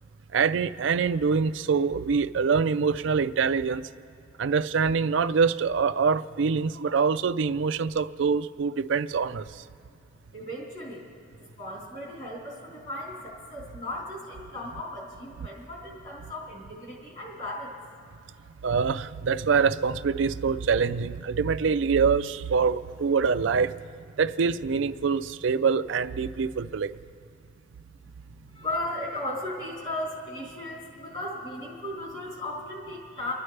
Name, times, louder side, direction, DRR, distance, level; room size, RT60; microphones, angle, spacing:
voice 1, 0.3-3.8 4.4-9.4 18.6-23.7 24.2-26.9, right 5 dB, 65° right, 11 dB, 0.4 m, -25 dB
voice 2, 10.3-11.0 11.4-17.8 28.2-33.3, left 1 dB, 35° left, -5 dB, 3.8 m, -36 dB
30.0 x 10.5 x 3.3 m, 2.4 s
head